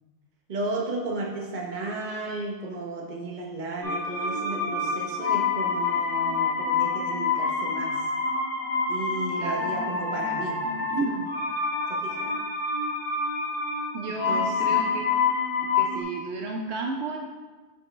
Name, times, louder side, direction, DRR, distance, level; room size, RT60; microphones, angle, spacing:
voice 1, 0.5-8.1 8.9-10.6 11.9-12.4 14.1-14.9, right 2 dB, 45° right, 0 dB, 1.0 m, -34 dB
sound 1, 3.8-16.0, left 4 dB, 85° left, 1.7 m, -27 dB
voice 2, 9.4-9.7 10.8-11.3 13.9-15.1 15.6-17.2, right 3 dB, 70° right, 1 dB, 0.9 m, -32 dB
6.9 x 5.2 x 3.2 m, 1.3 s
omnidirectional pair, 1.2 m